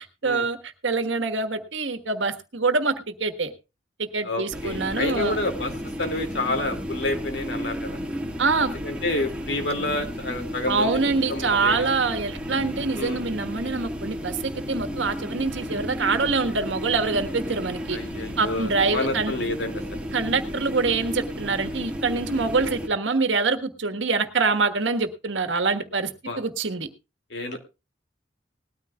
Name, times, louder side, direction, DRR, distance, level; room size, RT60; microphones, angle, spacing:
voice 1, 0.0-2.9 3.2-3.5 4.0-5.4 8.4-8.7 10.7-18.0 18.4-19.3 20.1-26.1 26.4-26.9, right 4 dB, 85° right, 8 dB, 1.5 m, -25 dB
voice 2, 4.2-5.7 6.0-8.0 8.6-10.9 11.3-11.9 13.0-13.2 17.9-20.0 26.3-26.4 27.3-27.6, left 2 dB, 65° left, 5 dB, 2.5 m, -29 dB
sound 1, 4.5-22.9, equal, 5° right, 1.8 m, -33 dB
19.5 x 13.5 x 2.4 m, 0.29 s
head